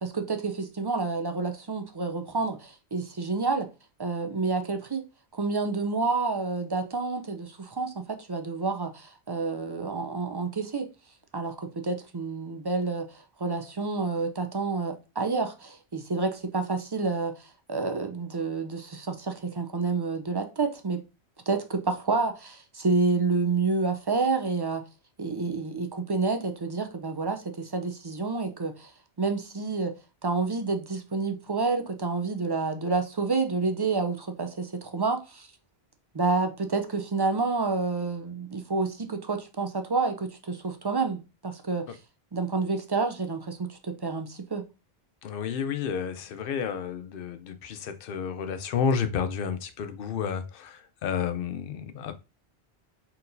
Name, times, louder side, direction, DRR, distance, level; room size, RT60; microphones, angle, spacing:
voice 1, 0.0-3.7 4.0-5.0 5.3-10.9 11.3-21.0 21.5-24.8 25.2-28.9 29.2-29.9 30.2-35.5 36.1-41.8 42.3-44.6, right 4 dB, 40° right, 0.3 m, -29 dB
voice 2, 45.2-52.1, left 7 dB, 65° left, 0.7 m, -31 dB
4.3 x 3.9 x 2.6 m
omnidirectional pair, 1.1 m